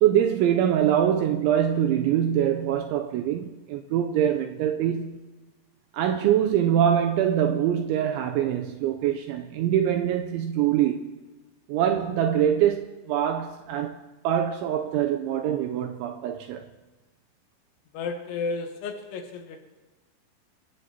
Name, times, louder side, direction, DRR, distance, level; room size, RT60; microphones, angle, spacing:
voice 1, 0.0-5.2 5.9-11.1 11.7-14.0 14.2-16.7, right 10 dB, 85° right, 2.8 m, -24 dB
voice 2, 17.9-19.6, left 4 dB, 75° left, 3.4 m, -32 dB
26.0 x 16.0 x 2.9 m
omnidirectional pair, 5.7 m